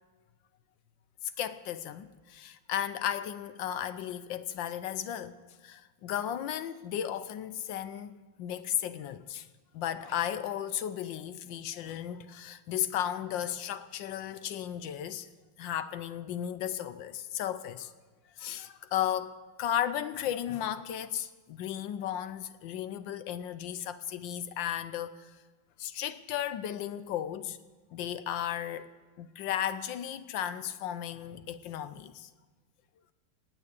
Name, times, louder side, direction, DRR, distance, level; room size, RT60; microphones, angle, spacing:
voice 1, 1.2-9.5 9.7-15.3 15.6-17.9 18.4-25.3 25.8-27.6 27.9-28.9 29.2-32.3, left 10 dB, 75° left, 1.3 m, -35 dB
18.0 x 9.1 x 8.3 m
omnidirectional pair, 2.2 m